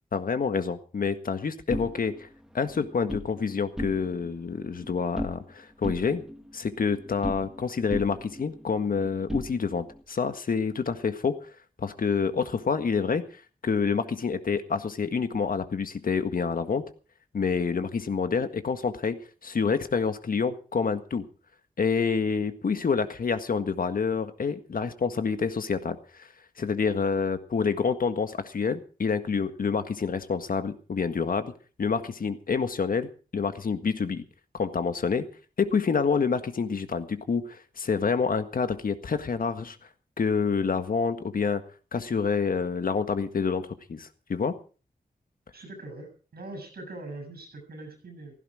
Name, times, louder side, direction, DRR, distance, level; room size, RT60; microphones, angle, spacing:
voice 1, 0.1-2.3 2.5-6.2 6.5-11.4 11.8-13.2 13.6-16.8 17.3-21.3 21.8-26.3 26.6-31.5 31.8-34.2 34.6-35.3 35.6-39.8 40.2-41.6 41.9-44.5, left 5 dB, 65° left, 9 dB, 1.7 m, -27 dB
sound 1, 1.7-3.3 3.7-4.3 4.6-5.5 5.8-7.6 7.9-10.0, equal, 5° right, 1.9 m, -37 dB
voice 2, 45.5-48.3, right 2 dB, 80° right, 8 dB, 7.1 m, -42 dB
16.5 x 15.5 x 4.8 m, 0.38 s
wide cardioid pair, 150°, 16 cm